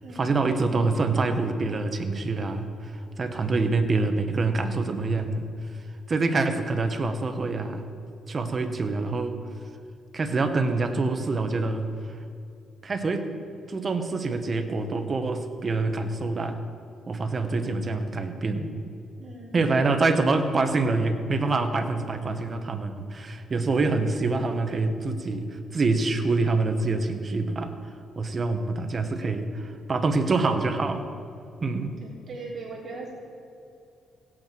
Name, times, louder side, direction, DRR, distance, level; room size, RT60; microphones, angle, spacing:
voice 1, 0.1-5.5 6.1-7.9 8.3-9.4 10.1-11.9 12.8-13.3 13.7-16.6 17.1-18.7 19.5-27.8 28.2-31.1 31.6-32.0, right 3 dB, 40° right, 7 dB, 1.1 m, -26 dB
voice 2, 17.4-17.8 19.2-19.5 32.0-33.1, right 3 dB, 55° right, -3 dB, 3.0 m, -40 dB
16.5 x 8.8 x 4.6 m, 2.6 s
cardioid pair, 90°, 0 cm